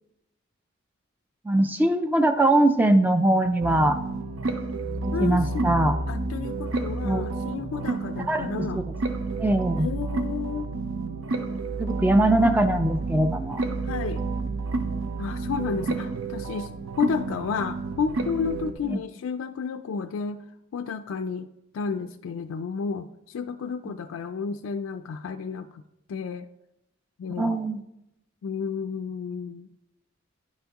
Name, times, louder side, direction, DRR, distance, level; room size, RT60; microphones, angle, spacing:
voice 1, 1.5-4.0 5.2-6.0 7.0-7.2 8.3-8.8 9.4-9.9 11.8-13.6 18.9-19.0 27.4-27.8, right 1 dB, 10° right, 8 dB, 0.3 m, -21 dB
sound 1, 3.6-18.7, right 3 dB, 80° right, 0.7 m, -30 dB
voice 2, 5.1-5.8 6.1-8.8 9.8-10.7 13.8-14.2 15.2-20.4 20.7-21.5 21.7-25.8 26.1-26.5 27.2-27.6 28.4-29.7, left 6 dB, 80° left, 8 dB, 0.3 m, -31 dB
10.0 x 5.6 x 2.9 m, 0.86 s
head